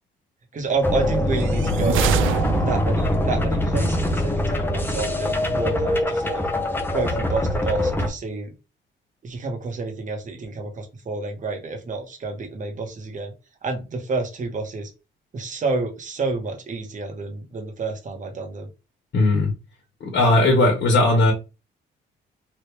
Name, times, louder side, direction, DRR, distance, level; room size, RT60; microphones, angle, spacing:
voice 1, 0.5-2.1 2.6-6.4 6.9-8.5 9.2-13.3 13.6-14.9 15.3-18.7, right 3 dB, 40° right, 1.1 m, -29 dB
sound 1, 0.8-8.1, left 1 dB, 10° left, 0.7 m, -23 dB
sound 2, 1.3-3.1, right 6 dB, 85° right, 0.4 m, -25 dB
voice 2, 19.1-19.5 20.0-21.3, left 2 dB, 60° left, 1.2 m, -17 dB
3.1 x 2.5 x 3.3 m
cardioid pair, 90°, 20 cm